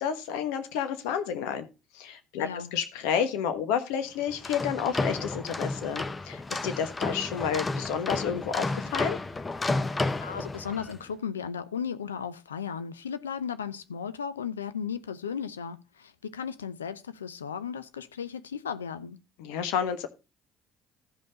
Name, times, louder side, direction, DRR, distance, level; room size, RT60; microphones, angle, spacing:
voice 1, 0.0-1.7 1.9-9.2 19.4-20.1, left 8 dB, 70° left, 1.2 m, -30 dB
voice 2, 2.4-2.7 10.2-19.2, left 7 dB, 90° left, 0.6 m, -35 dB
sound 1, 4.3-11.0, left 3 dB, 25° left, 0.8 m, -32 dB
14.5 x 5.4 x 3.8 m
hypercardioid pair, 60°, 0 cm